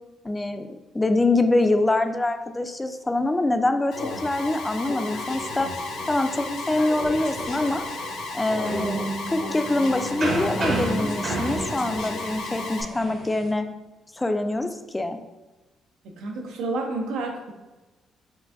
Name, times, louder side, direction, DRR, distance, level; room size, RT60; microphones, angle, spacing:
voice 1, 0.2-0.7 0.9-5.7 6.0-7.8 8.3-13.7 14.1-15.2, left 2 dB, 15° left, 8 dB, 0.3 m, -24 dB
Alarm, 3.9-12.8, left 3 dB, 70° left, 0.6 m, -33 dB
sound 1, 5.2-13.5, right 2 dB, 55° right, 0.9 m, -33 dB
voice 2, 16.0-17.5, right 3 dB, 90° right, 2 dB, 0.5 m, -30 dB
4.5 x 2.5 x 2.4 m, 1.1 s
cardioid pair, 90°, 0 cm